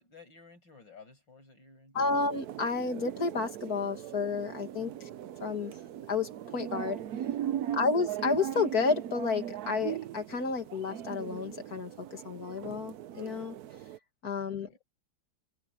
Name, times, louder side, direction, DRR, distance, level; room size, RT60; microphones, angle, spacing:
voice 1, 0.0-2.3 4.8-5.2 7.6-7.9 14.4-14.8, left 4 dB, 85° left, 7.4 m, -55 dB
voice 2, 1.9-5.1 5.4-5.8 6.1-7.0 7.7-13.6 14.2-14.8, left 4 dB, 55° left, 2.9 m, -31 dB
sound 1, 1.9-14.0, right 11 dB, 65° right, 1.1 m, -39 dB
omnidirectional pair, 2.0 m